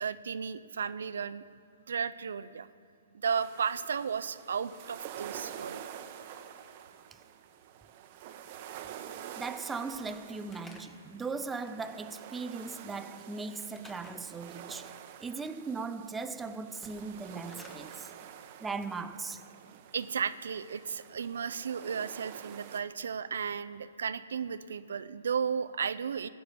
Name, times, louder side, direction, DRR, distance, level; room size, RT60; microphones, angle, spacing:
voice 1, 0.0-1.4 1.9-2.7 3.2-5.8 19.9-26.3, right 6 dB, 70° right, 0.4 m, -34 dB
sound 1, 3.3-22.8, right 9 dB, 40° right, 0.8 m, -48 dB
voice 2, 9.4-14.9 15.2-18.1 18.6-19.4, right 4 dB, 10° right, 0.4 m, -38 dB
Slam / Wood, 9.9-11.2 13.7-14.3 16.7-17.9, left 1 dB, 10° left, 1.1 m, -53 dB
14.5 x 5.9 x 8.6 m
hypercardioid pair, 130°, 0 cm